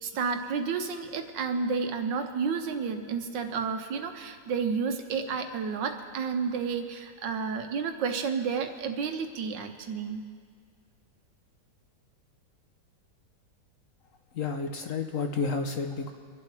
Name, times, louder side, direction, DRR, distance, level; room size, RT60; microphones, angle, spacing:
voice 1, 0.0-10.2, right 5 dB, 85° right, 6 dB, 1.7 m, -31 dB
voice 2, 14.4-16.1, left 4 dB, 60° left, 5 dB, 1.0 m, -30 dB
24.5 x 11.5 x 3.3 m, 2.1 s
omnidirectional pair, 1.9 m